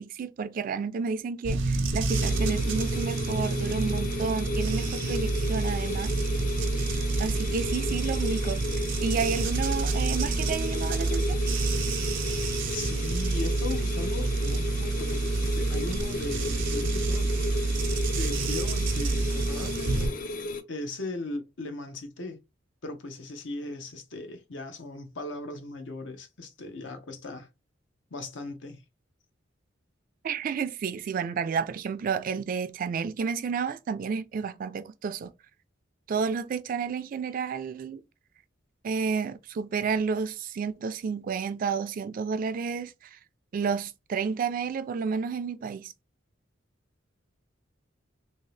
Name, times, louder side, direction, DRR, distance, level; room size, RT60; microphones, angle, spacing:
voice 1, 0.0-6.1 7.2-8.6 9.0-11.4 30.2-35.3 36.1-38.0 38.8-43.2 43.5-45.9, right 5 dB, 45° right, 0.3 m, -31 dB
sound 1, 1.4-20.1, right 3 dB, 85° right, 0.6 m, -28 dB
sound 2, 2.1-20.6, left 2 dB, 45° left, 0.4 m, -35 dB
voice 2, 12.7-17.3 18.2-20.2 20.7-22.4 22.8-27.5 28.1-28.8, left 2 dB, 70° left, 0.7 m, -38 dB
2.7 x 2.7 x 3.2 m
head